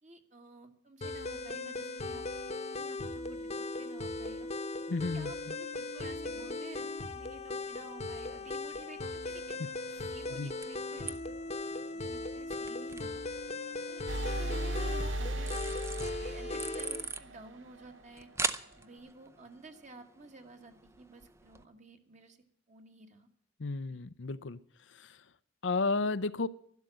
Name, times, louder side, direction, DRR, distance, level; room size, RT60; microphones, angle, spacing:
voice 1, 0.0-2.2 2.7-4.5 5.1-9.6 10.1-13.2 13.9-18.3 18.8-23.3 23.9-24.0, right 2 dB, 35° right, 1.7 m, -53 dB
sound 1, 1.0-17.0, left 3 dB, 35° left, 1.0 m, -38 dB
voice 2, 4.9-5.5 10.3-10.5 23.6-24.6 24.9-25.2 25.6-26.5, left 3 dB, 65° left, 0.6 m, -33 dB
sound 2, 7.5-21.6, right 4 dB, 15° right, 0.6 m, -44 dB
sound 3, 14.1-17.8, right 1 dB, 70° right, 0.7 m, -36 dB
12.0 x 12.0 x 7.6 m
head